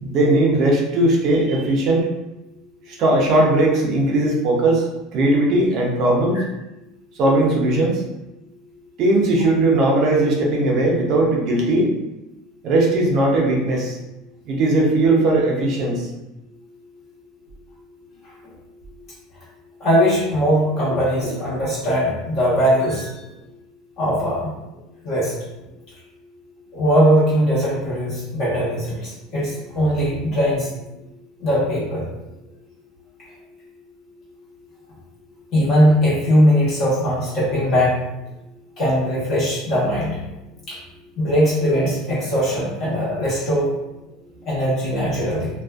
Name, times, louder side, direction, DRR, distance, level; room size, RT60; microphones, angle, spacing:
voice 1, 0.0-2.1 3.0-6.4 7.2-8.0 9.0-11.9 12.6-14.0 14.5-16.1, right 2 dB, 50° right, -1 dB, 0.5 m, -18 dB
voice 2, 19.8-23.2 24.0-24.5 25.0-25.3 26.7-30.7 31.4-32.0 35.5-38.0 38.8-40.2 40.7-40.8 41.2-43.7 44.4-45.5, equal, 45° left, -9 dB, 1.1 m, -20 dB
2.5 x 2.3 x 2.3 m, 0.95 s
supercardioid pair, 125°, 0 cm